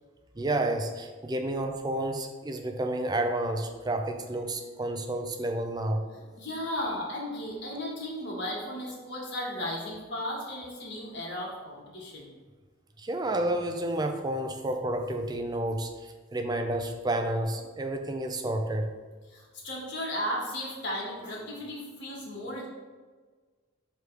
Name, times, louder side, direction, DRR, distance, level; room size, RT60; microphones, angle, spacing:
voice 1, 0.4-6.1 13.0-18.9, right 1 dB, 20° right, 5 dB, 0.5 m, -30 dB
voice 2, 6.1-12.3 19.3-22.7, left 1 dB, 60° left, -3 dB, 1.7 m, -35 dB
6.3 x 3.4 x 4.6 m, 1.4 s
head